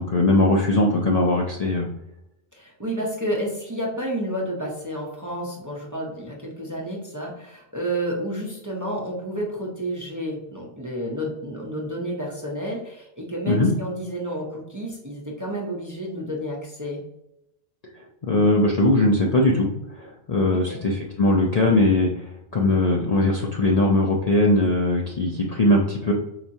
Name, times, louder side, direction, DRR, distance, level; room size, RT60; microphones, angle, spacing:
voice 1, 0.0-1.9 13.5-13.7 17.9-26.1, left 2 dB, 50° left, -1 dB, 0.5 m, -20 dB
voice 2, 2.5-17.0 20.5-20.8, right 1 dB, 20° right, -3 dB, 0.6 m, -30 dB
4.5 x 2.9 x 2.6 m, 0.85 s
omnidirectional pair, 1.2 m